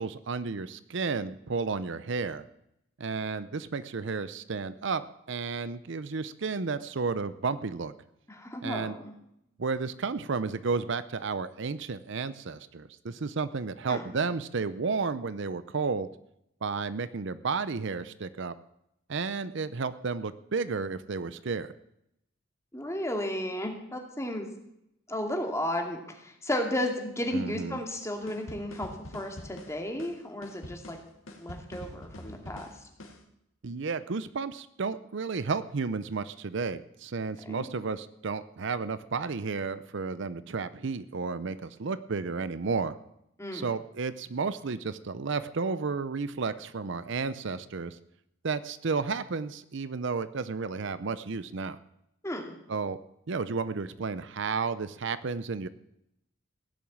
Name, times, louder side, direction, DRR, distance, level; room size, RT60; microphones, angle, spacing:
voice 1, 0.0-2.4 3.0-5.0 5.3-7.9 8.6-8.9 9.6-16.1 16.6-18.5 19.1-21.7 27.3-27.8 33.6-42.9 43.5-48.0 48.4-51.8 52.7-53.0 53.3-55.7, right 4 dB, 65° right, 14 dB, 0.6 m, -32 dB
voice 2, 8.3-9.1 13.9-14.0 22.7-24.5 25.1-31.0 31.4-32.7 37.4-37.6 43.4-43.7 52.2-52.5, left 1 dB, 15° left, 2 dB, 2.3 m, -33 dB
sound 1, 28.3-33.2, left 1 dB, 85° left, 2.6 m, -45 dB
17.0 x 7.2 x 8.7 m, 0.80 s
head